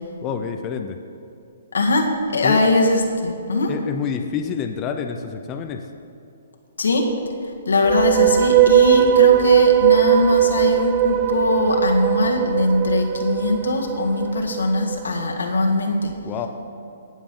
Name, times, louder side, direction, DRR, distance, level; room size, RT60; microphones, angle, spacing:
voice 1, 0.2-1.0 2.4-2.6 3.7-5.9 16.2-16.5, left 7 dB, 25° left, 5 dB, 0.6 m, -27 dB
voice 2, 1.7-3.7 6.8-7.1 7.7-16.1, left 2 dB, 90° left, 1 dB, 1.7 m, -21 dB
sound 1, 7.7-15.0, right 10 dB, 25° right, 0.4 m, -18 dB
18.0 x 7.3 x 3.8 m, 2.7 s
hypercardioid pair, 145°, 0 cm